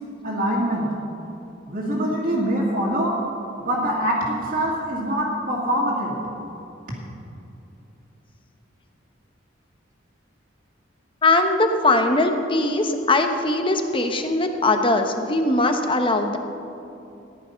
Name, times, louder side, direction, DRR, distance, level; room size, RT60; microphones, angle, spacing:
voice 1, 0.2-0.9 1.7-3.2 3.6-6.2, equal, 45° right, -7 dB, 2.1 m, -24 dB
voice 2, 11.2-16.4, left 2 dB, 25° left, 6 dB, 1.0 m, -20 dB
15.0 x 10.5 x 5.8 m, 2.8 s
head